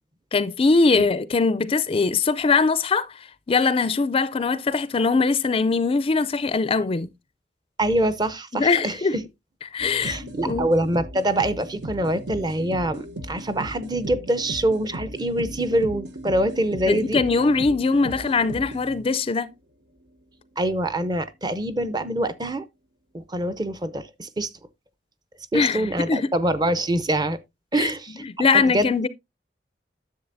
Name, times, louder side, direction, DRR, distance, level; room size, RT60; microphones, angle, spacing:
voice 1, 0.3-7.1 8.5-9.2 9.7-10.7 16.9-19.5 25.5-26.3 27.8-27.9 28.2-29.1, left 4 dB, 30° left, 0.4 m, -22 dB
voice 2, 7.8-9.2 10.0-17.2 20.6-22.6 23.1-24.5 25.5-27.4 27.7-28.9, right 1 dB, 25° right, 0.7 m, -25 dB
sound 1, 9.8-19.3, right 1 dB, 85° right, 1.0 m, -36 dB
10.5 x 7.3 x 2.6 m
head